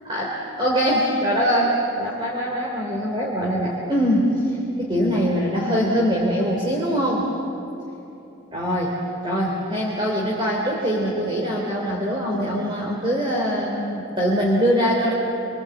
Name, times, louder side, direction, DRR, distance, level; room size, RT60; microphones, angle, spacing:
voice 1, 0.1-7.3 8.5-9.0 9.2-15.1, equal, 25° right, -3 dB, 3.4 m, -23 dB
29.0 x 23.5 x 8.1 m, 2.9 s
head